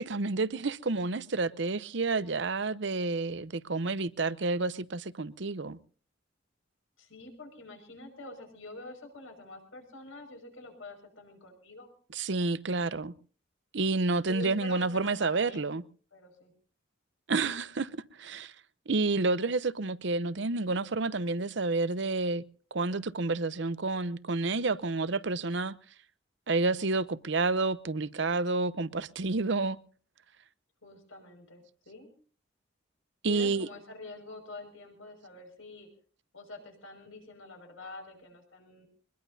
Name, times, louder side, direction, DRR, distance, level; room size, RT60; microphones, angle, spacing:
voice 1, 0.0-5.8 12.1-13.1 13.7-15.8 17.3-17.9 18.2-18.5 18.9-22.4 22.7-25.7 26.5-29.8 33.2-33.7, right 3 dB, 60° right, 0.7 m, -29 dB
voice 2, 7.0-11.9 14.3-15.7 16.1-16.5 30.8-32.1 33.2-35.9 36.3-38.9, left 2 dB, 85° left, 5.8 m, -46 dB
23.0 x 21.0 x 2.7 m
head